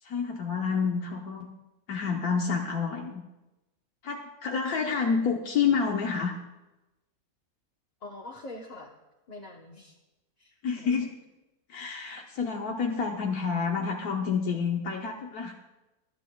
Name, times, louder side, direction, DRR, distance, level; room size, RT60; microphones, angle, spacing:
voice 1, 0.0-1.5 1.9-3.2 4.0-6.4 10.6-11.1 11.7-15.5, left 5 dB, 80° left, 1 dB, 1.4 m, -29 dB
voice 2, 8.0-8.9 9.3-10.0 10.4-11.0, left 2 dB, 30° left, -2 dB, 0.9 m, -44 dB
23.5 x 11.5 x 2.3 m, 1.0 s
omnidirectional pair, 1.6 m